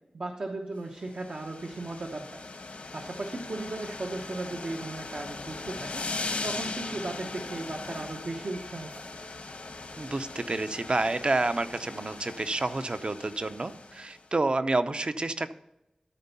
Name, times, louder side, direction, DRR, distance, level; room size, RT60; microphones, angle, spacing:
voice 1, 0.1-2.4 2.9-6.0 6.4-8.9, right 2 dB, 70° right, 2 dB, 0.9 m, -36 dB
sound 1, 1.0-14.2, left 3 dB, 80° left, 1.3 m, -39 dB
voice 2, 10.0-15.5, right 2 dB, 45° right, 11 dB, 0.6 m, -29 dB
13.5 x 4.5 x 5.6 m, 0.89 s
wide cardioid pair, 75°, 2 cm